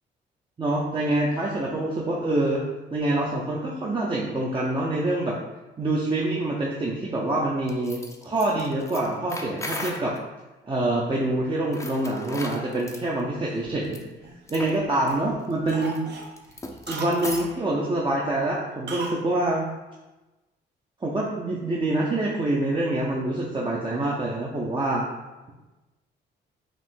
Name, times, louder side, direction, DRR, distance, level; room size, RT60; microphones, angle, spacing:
voice 1, 0.6-2.6 2.9-5.4 5.8-10.1 10.7-14.0 14.5-16.0 16.9-19.7 21.0-25.1, right 2 dB, 25° right, -4 dB, 0.6 m, -26 dB
sound 1, 7.7-10.2 11.6-13.0 13.8-14.0 14.5-14.8 15.1-15.2 15.5-17.6, left 2 dB, 15° left, 0.5 m, -37 dB
Cough, 13.5-14.7 15.1-15.3 15.7-17.5 18.9-19.2 19.5-19.6, right 3 dB, 60° right, 0.8 m, -37 dB
4.9 x 2.6 x 3.7 m, 1.1 s
cardioid pair, 90°, 20 cm